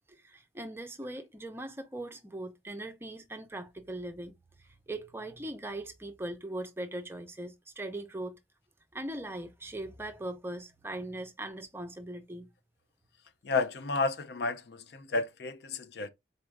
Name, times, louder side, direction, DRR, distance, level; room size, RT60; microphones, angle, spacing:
voice 1, 0.1-4.3 4.6-8.4 8.9-12.5, right 1 dB, 15° right, 0.6 m, -40 dB
voice 2, 13.4-16.1, left 3 dB, 60° left, 0.5 m, -32 dB
4.2 x 2.4 x 4.5 m
head